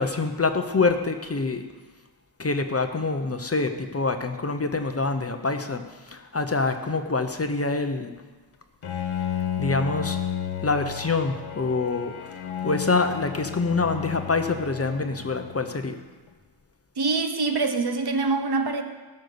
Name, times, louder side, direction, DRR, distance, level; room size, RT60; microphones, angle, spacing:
voice 1, 0.0-1.6 2.4-8.1 9.6-10.2 10.6-12.1 12.6-16.0, left 3 dB, 30° left, 7 dB, 0.9 m, -26 dB
Bowed string instrument, 8.8-15.9, left 9 dB, 85° left, 1.3 m, -32 dB
voice 2, 17.0-18.8, right 3 dB, 55° right, 7 dB, 1.2 m, -24 dB
16.0 x 6.6 x 6.9 m, 1.3 s
wide cardioid pair, 105°, 48 cm